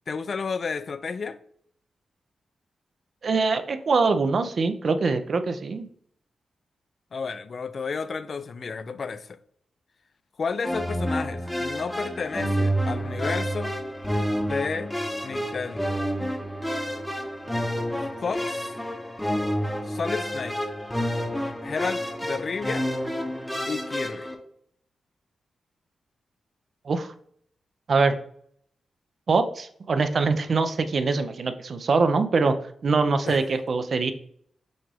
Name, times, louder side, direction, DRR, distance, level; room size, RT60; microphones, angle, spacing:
voice 1, 0.1-1.4 7.1-9.4 10.4-13.7 14.4-14.9 15.2-15.9 18.2-18.7 19.8-20.6 21.6-22.9 23.7-24.3 33.3-33.4, left 5 dB, 55° left, 0.3 m, -32 dB
voice 2, 3.2-5.9 26.9-27.1 27.9-28.2 29.3-32.6 32.8-34.1, right 4 dB, 60° right, 0.4 m, -23 dB
sound 1, 10.6-24.3, equal, 5° left, 0.7 m, -29 dB
6.1 x 2.4 x 3.3 m
cardioid pair, 85°, 0 cm